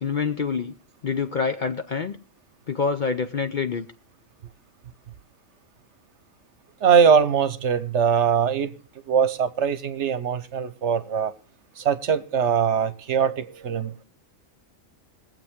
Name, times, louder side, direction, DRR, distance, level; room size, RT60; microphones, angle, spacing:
voice 1, 0.0-0.7 1.0-2.2 2.7-3.9, left 5 dB, 50° left, 0.6 m, -26 dB
voice 2, 6.8-8.7 9.1-11.3 11.8-13.9, right 7 dB, 60° right, 1.1 m, -21 dB
21.5 x 7.7 x 3.6 m
omnidirectional pair, 1.4 m